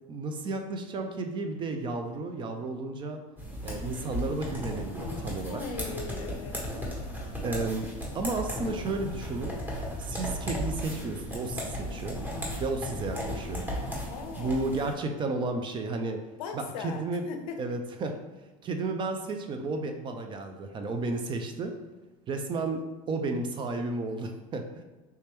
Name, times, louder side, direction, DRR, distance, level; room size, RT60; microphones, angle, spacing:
voice 1, 0.1-3.2 3.6-5.6 7.4-7.9 8.1-9.6 10.0-12.2 12.6-13.6 14.4-16.2 16.5-17.2 17.6-18.2 18.6-21.7 22.3-24.8, right 3 dB, 25° right, 5 dB, 0.4 m, -32 dB
sound 1, 3.4-14.9, equal, 10° right, 1.3 m, -36 dB
voice 2, 5.5-6.6 14.1-14.6 16.4-17.6, left 5 dB, 80° left, 6 dB, 0.5 m, -39 dB
3.3 x 2.8 x 3.4 m, 1.2 s
supercardioid pair, 110°, 18 cm